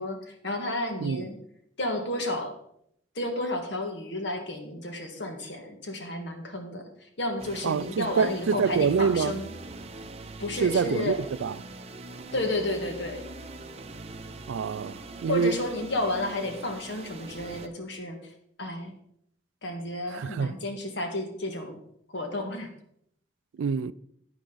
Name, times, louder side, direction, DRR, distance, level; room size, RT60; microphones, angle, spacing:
voice 1, 0.0-1.4 1.8-2.5 3.1-9.5 10.4-11.2 12.3-13.2 15.3-19.0 19.6-21.8 22.1-22.7, left 1 dB, 65° left, 1.6 m, -32 dB
sound 1, 7.4-17.7, right 2 dB, 30° right, 0.6 m, -42 dB
voice 2, 7.6-9.4 10.6-11.1 11.4-11.5 14.5-15.5 20.1-20.5 23.6-23.9, right 6 dB, 80° right, 0.4 m, -26 dB
10.0 x 9.7 x 3.9 m
head